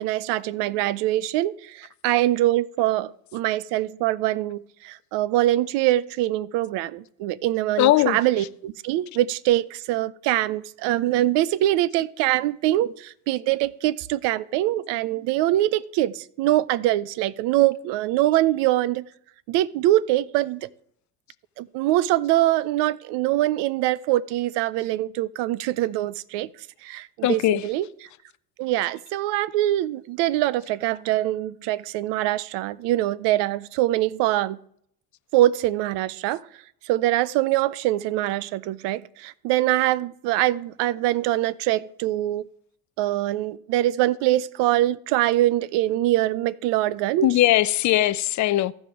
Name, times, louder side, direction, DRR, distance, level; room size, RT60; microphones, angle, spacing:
voice 1, 0.0-19.1 19.5-20.7 21.6-26.5 26.8-27.9 28.6-34.6 35.3-36.4 36.8-42.5 43.0-47.3, right 15 dB, 60° right, 0.6 m, -23 dB
voice 2, 7.8-8.2 27.2-27.6 47.2-48.7, left 14 dB, 40° left, 0.5 m, -19 dB
15.0 x 5.2 x 3.5 m
hypercardioid pair, 70°, 49 cm